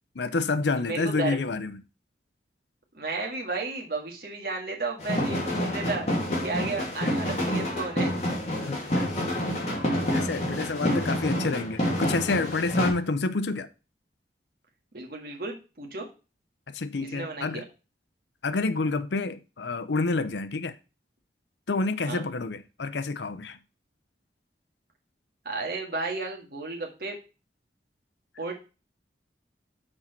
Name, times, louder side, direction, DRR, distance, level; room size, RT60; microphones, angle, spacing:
voice 1, 0.2-1.8 8.6-9.3 9.7-9.9 10.1-13.7 16.7-17.6 18.4-20.8 21.7-23.6, left 3 dB, 75° left, 0.6 m, -29 dB
voice 2, 0.8-1.4 2.9-6.1 6.4-8.2 10.8-11.1 14.9-16.1 17.0-17.6 22.0-22.2 25.5-27.2 28.4-28.5, right 3 dB, 55° right, 1.8 m, -33 dB
sound 1, 5.0-12.9, equal, 35° left, 2.5 m, -28 dB
6.2 x 4.5 x 5.8 m
head